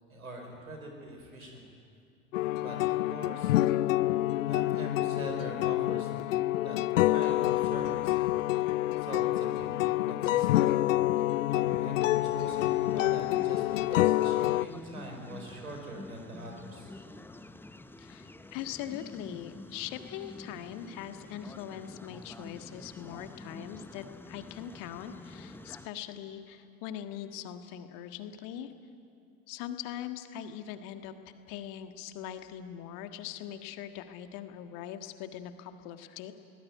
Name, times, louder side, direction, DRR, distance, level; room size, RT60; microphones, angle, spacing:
voice 1, 0.1-1.6 2.6-3.5 4.4-6.1 6.6-8.1 8.5-10.7 11.2-16.9, right 1 dB, 80° right, 2 dB, 4.6 m, -43 dB
sound 1, 2.3-14.6, left 15 dB, 65° left, 0.5 m, -27 dB
sound 2, 12.5-25.9, left 2 dB, 5° left, 0.9 m, -48 dB
voice 2, 18.0-28.7 29.5-31.1 31.5-36.3, left 10 dB, 50° left, 8 dB, 1.7 m, -41 dB
22.5 x 19.5 x 9.3 m, 2.4 s
figure-of-eight pair, 70°, 41 cm